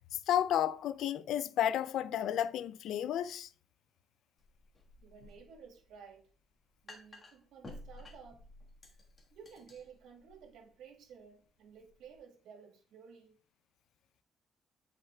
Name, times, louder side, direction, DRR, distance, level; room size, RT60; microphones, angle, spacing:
voice 1, 0.3-3.5, left 10 dB, 75° left, 0.4 m, -32 dB
sound 1, 4.4-12.2, left 2 dB, 25° left, 1.6 m, -55 dB
voice 2, 5.0-6.3 6.8-8.5 9.3-13.4, right 6 dB, 85° right, 1.3 m, -54 dB
8.9 x 5.7 x 2.3 m
cardioid pair, 155°, 0 cm